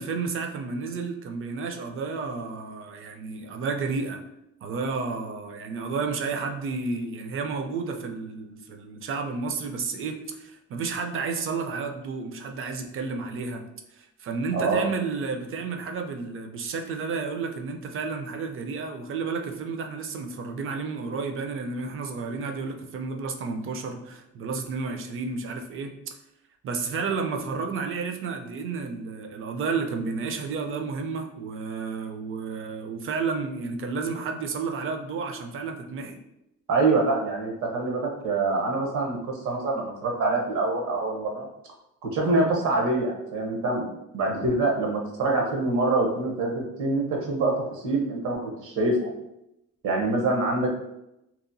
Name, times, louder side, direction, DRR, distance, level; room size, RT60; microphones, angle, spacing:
voice 1, 0.0-4.2 4.6-13.6 13.9-26.1 26.6-36.2, right 4 dB, 45° right, 5 dB, 0.4 m, -31 dB
voice 2, 36.7-41.4 42.0-43.9 44.1-49.1 49.8-50.7, right 2 dB, 75° right, 0 dB, 0.9 m, -25 dB
2.9 x 2.1 x 2.6 m, 0.86 s
cardioid pair, 105°, 30 cm